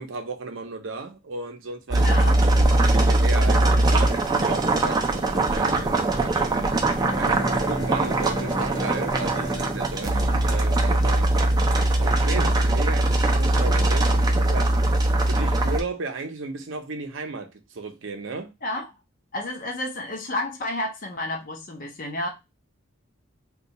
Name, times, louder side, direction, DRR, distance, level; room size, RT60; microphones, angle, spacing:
voice 1, 0.0-2.3 2.9-11.3 12.0-18.5, right 3 dB, 60° right, 0.6 m, -35 dB
sound 1, 1.9-15.8, right 2 dB, 20° right, 0.4 m, -21 dB
voice 2, 2.0-2.4 10.0-10.4 12.3-12.5 18.6-18.9 19.3-22.3, left 1 dB, 40° left, 0.6 m, -31 dB
Bowed string instrument, 6.9-11.5, equal, 80° left, 1.0 m, -33 dB
2.7 x 2.3 x 3.9 m
head